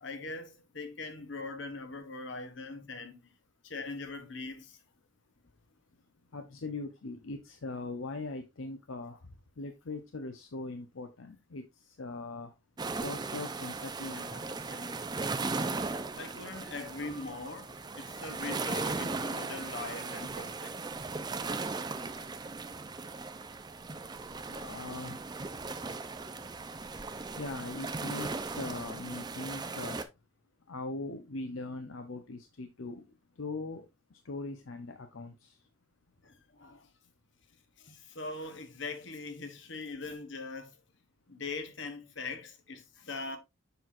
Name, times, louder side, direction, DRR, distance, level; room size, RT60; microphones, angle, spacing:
voice 1, 0.0-3.3 3.6-4.8 16.1-21.0 26.4-26.5 36.2-36.8 37.8-40.7 41.3-43.4, left 3 dB, 65° left, 1.2 m, -41 dB
voice 2, 6.3-12.5 13.0-15.0 24.5-25.2 27.4-30.0 30.7-33.1 33.4-33.8 34.2-35.6, left 3 dB, 80° left, 0.7 m, -41 dB
sound 1, 12.8-30.0, right 3 dB, 20° right, 0.4 m, -37 dB
6.9 x 5.9 x 2.5 m
head